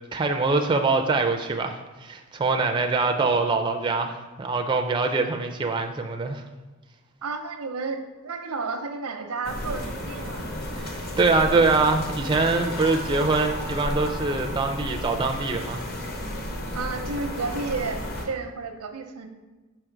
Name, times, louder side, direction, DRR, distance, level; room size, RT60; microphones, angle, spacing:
voice 1, 0.1-6.4 10.8-15.8, right 3 dB, 20° right, 4 dB, 0.3 m, -24 dB
voice 2, 7.2-10.4 16.7-19.3, right 4 dB, 90° right, 6 dB, 0.7 m, -32 dB
sound 1, 9.4-18.3, left 1 dB, 45° left, 0.9 m, -33 dB
4.9 x 4.6 x 4.5 m, 1.2 s
head